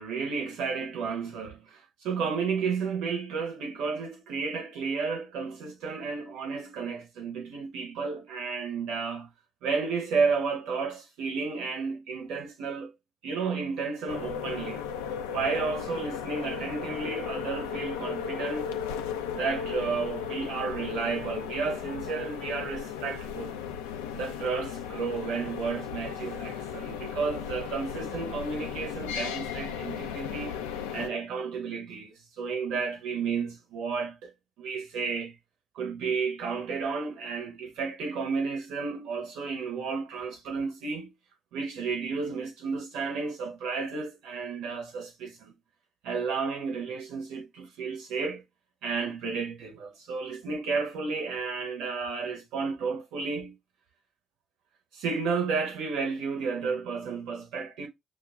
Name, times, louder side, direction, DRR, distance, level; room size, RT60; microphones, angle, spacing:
voice 1, 0.0-9.3 9.6-12.9 13.2-14.9 15.3-18.7 19.3-23.5 24.1-30.6 30.9-34.3 34.6-35.4 35.7-41.1 41.5-45.5 46.0-48.4 48.8-53.6 54.9-57.9, right 5 dB, 70° right, 0.6 m, -32 dB
sound 1, 14.1-31.1, left 8 dB, 80° left, 0.3 m, -36 dB
6.1 x 2.1 x 2.3 m
figure-of-eight pair, 40°, 0 cm